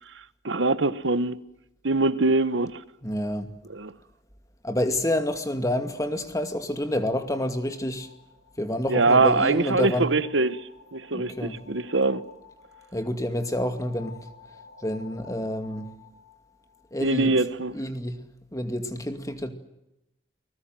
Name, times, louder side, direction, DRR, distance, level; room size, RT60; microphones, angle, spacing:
voice 1, 0.4-1.4 1.8-2.8 3.7-3.9 8.9-10.6 10.9-12.2 17.0-17.7, right 3 dB, 90° right, 1.3 m, -23 dB
voice 2, 3.0-3.5 4.6-8.1 8.6-10.1 11.1-11.6 12.9-14.2 14.8-15.9 16.9-17.4 17.7-18.2 18.5-19.5, left 1 dB, 20° left, 2.2 m, -28 dB
sound 1, 6.0-17.3, left 5 dB, 90° left, 5.9 m, -53 dB
29.5 x 20.5 x 7.7 m
head